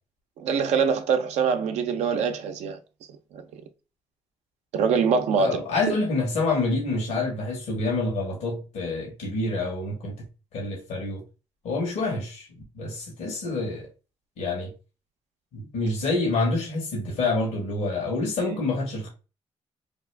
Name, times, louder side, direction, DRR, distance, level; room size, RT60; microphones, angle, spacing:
voice 1, 0.4-2.8 3.3-3.6 4.7-6.0 18.5-18.6, right 6 dB, 80° right, 0.5 m, -24 dB
voice 2, 5.4-10.2 10.5-11.2 11.6-12.5 12.7-13.9 14.4-14.7 15.5-19.1, left 3 dB, 85° left, 1.4 m, -27 dB
2.9 x 2.5 x 3.2 m
cardioid pair, 70°, 11 cm